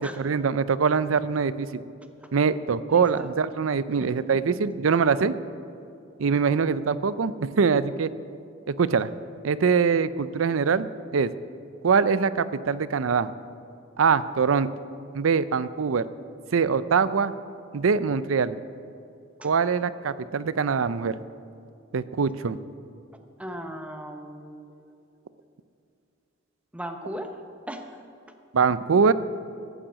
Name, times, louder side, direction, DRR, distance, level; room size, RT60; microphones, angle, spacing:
voice 1, 0.0-1.8 2.3-5.3 6.2-8.1 8.7-9.1 9.4-10.9 11.1-11.3 11.8-13.3 14.0-14.7 15.1-16.0 16.5-17.3 17.7-18.6 19.4-21.2 21.9-22.6 28.5-29.1, right 5 dB, 85° right, 15 dB, 0.5 m, -23 dB
voice 2, 2.9-3.3 4.0-4.1 19.4-19.5 23.4-24.9 26.7-27.3 27.7-27.8, equal, 5° right, 5 dB, 0.9 m, -37 dB
14.5 x 8.9 x 6.3 m, 2.6 s
head